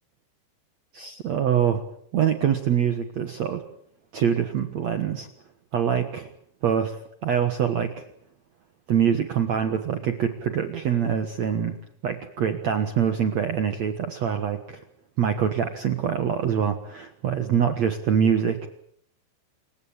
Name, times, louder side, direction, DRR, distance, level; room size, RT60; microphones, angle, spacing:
voice 1, 0.9-1.8 2.1-3.6 4.1-5.3 5.7-6.3 6.6-7.0 7.2-8.0 8.9-11.8 12.0-14.8 15.2-18.6, right 8 dB, 70° right, 7 dB, 1.6 m, -24 dB
28.5 x 16.0 x 8.8 m, 0.68 s
omnidirectional pair, 5.3 m